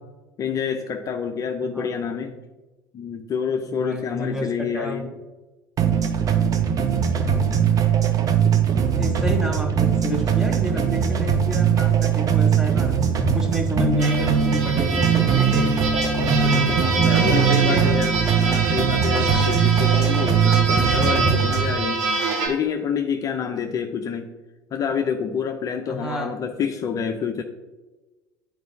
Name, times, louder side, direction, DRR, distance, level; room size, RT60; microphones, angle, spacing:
voice 1, 0.4-2.4 2.9-5.1 16.4-16.7 17.0-22.1 22.5-24.3 24.7-27.4, left 7 dB, 35° left, 5 dB, 0.5 m, -27 dB
voice 2, 3.7-4.5 4.7-5.1 7.2-7.7 8.9-13.1 13.3-15.7 16.1-18.0 25.9-26.3, right 1 dB, 5° right, 3 dB, 1.2 m, -30 dB
sound 1, 5.8-21.8, right 7 dB, 35° right, 0.8 m, -20 dB
sound 2, 14.0-22.5, right 3 dB, 70° right, 1.5 m, -25 dB
9.3 x 4.6 x 2.8 m, 1.2 s
hypercardioid pair, 70°, 10 cm